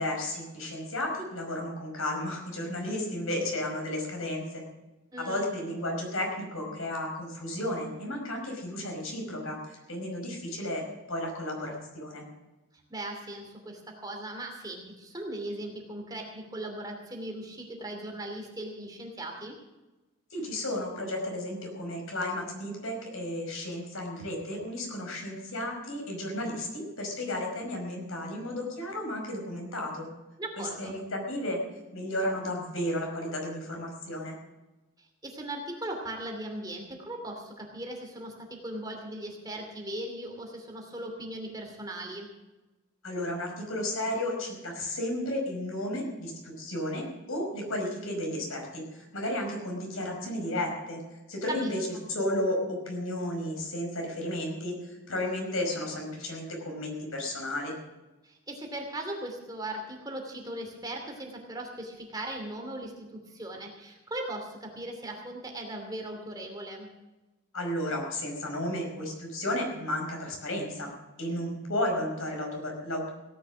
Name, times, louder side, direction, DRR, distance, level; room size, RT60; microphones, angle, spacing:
voice 1, 0.0-4.6 5.2-12.2 20.3-30.1 30.6-31.6 31.9-34.4 43.0-51.0 51.3-57.7 67.5-70.9 71.2-73.1, left 1 dB, 90° left, 1 dB, 5.2 m, -33 dB
voice 2, 5.1-5.5 12.9-19.6 30.4-31.0 35.0-42.3 51.5-51.7 58.2-66.9, right 1 dB, 20° right, 2 dB, 2.7 m, -38 dB
17.0 x 11.0 x 6.2 m, 1.1 s
head